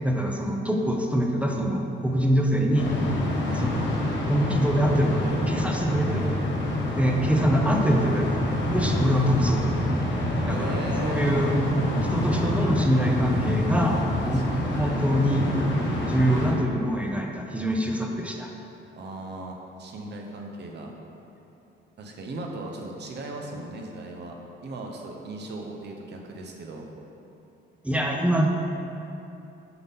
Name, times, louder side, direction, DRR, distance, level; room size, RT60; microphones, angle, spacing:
voice 1, 0.0-2.9 3.5-3.9 4.2-6.2 7.0-8.4 8.7-9.8 10.5-11.6 12.0-13.9 14.2-14.4 14.8-15.4 16.0-18.5 27.8-28.5, equal, 5° right, 0 dB, 0.6 m, -24 dB
sound 1, 2.7-16.5, left 1 dB, 65° left, 1.3 m, -26 dB
voice 2, 10.4-11.3 13.8-15.0 19.0-20.9 22.0-26.9, right 2 dB, 60° right, 1 dB, 0.9 m, -37 dB
5.9 x 5.5 x 3.6 m, 2.8 s
cardioid pair, 90°, 20 cm